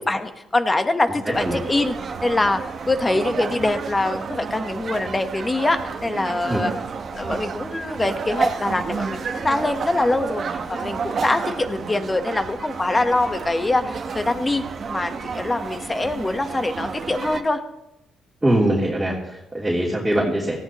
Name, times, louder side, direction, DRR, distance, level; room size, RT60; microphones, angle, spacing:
voice 1, 0.1-2.6 2.9-6.7 7.1-10.4 10.7-14.6 14.9-17.6, left 2 dB, 20° left, 8 dB, 1.2 m, -23 dB
sound 1, 1.3-17.4, right 5 dB, 50° right, 1.2 m, -31 dB
voice 2, 18.4-20.6, right 1 dB, 10° right, -5 dB, 3.1 m, -22 dB
18.0 x 14.5 x 3.1 m, 0.90 s
cardioid pair, 90°, 0 cm